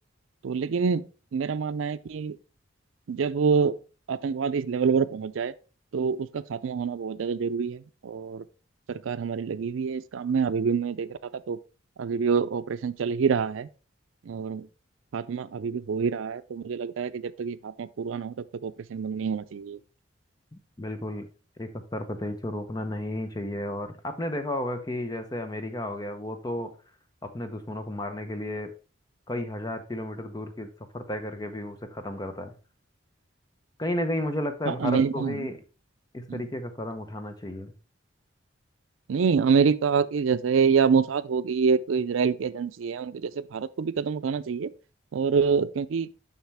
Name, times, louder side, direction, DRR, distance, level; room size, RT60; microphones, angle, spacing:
voice 1, 0.4-1.0 1.3-2.4 3.1-3.8 4.1-5.5 5.9-8.4 8.9-11.2 11.5-11.6 12.0-13.7 14.3-14.7 15.1-19.8 34.7-35.5 36.3-36.4 39.1-44.7 45.1-46.1, right 5 dB, 85° right, 0.4 m, -26 dB
voice 2, 20.5-21.3 21.6-26.7 27.3-28.7 29.3-30.7 30.9-32.5 33.8-35.6 36.1-37.7, left 1 dB, 20° left, 0.8 m, -33 dB
7.3 x 5.8 x 3.4 m
head